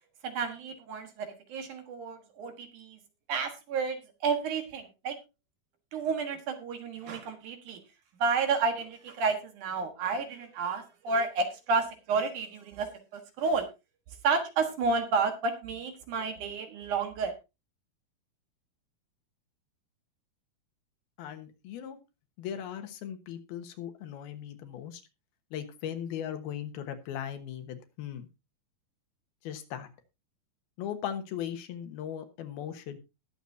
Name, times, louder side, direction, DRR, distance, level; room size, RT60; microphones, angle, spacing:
voice 1, 0.2-3.0 3.3-4.0 4.2-5.2 5.9-7.8 8.2-13.7 14.2-17.3, right 4 dB, 60° right, 7 dB, 2.7 m, -31 dB
voice 2, 21.2-22.0 22.4-25.0 25.5-28.3 29.4-29.9 30.8-33.0, left 9 dB, 80° left, 8 dB, 3.2 m, -38 dB
20.0 x 7.1 x 2.7 m, 0.26 s
omnidirectional pair, 4.3 m